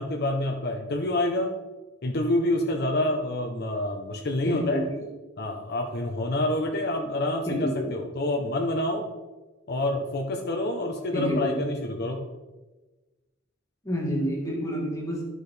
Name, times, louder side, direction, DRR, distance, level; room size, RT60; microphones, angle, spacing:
voice 1, 0.0-1.6 2.0-4.8 5.4-9.1 9.7-12.3, left 1 dB, 55° left, 2 dB, 0.8 m, -27 dB
voice 2, 4.4-4.9 7.5-8.0 11.1-11.7 13.8-15.2, equal, 15° left, -3 dB, 1.6 m, -28 dB
12.0 x 6.3 x 3.4 m, 1.2 s
head